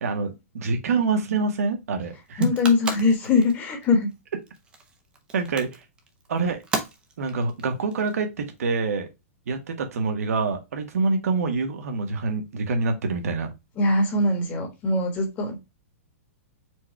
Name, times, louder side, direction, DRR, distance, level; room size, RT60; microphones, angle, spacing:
voice 1, 0.0-2.5 5.3-5.8 6.3-6.6 7.2-9.1 9.5-13.5, right 4 dB, 80° right, 1.1 m, -26 dB
sound 1, 2.2-8.6, right 3 dB, 10° right, 0.6 m, -36 dB
voice 2, 2.4-4.1 13.8-15.6, left 3 dB, 20° left, 1.2 m, -22 dB
4.6 x 2.3 x 4.4 m
hypercardioid pair, 165°, 8 cm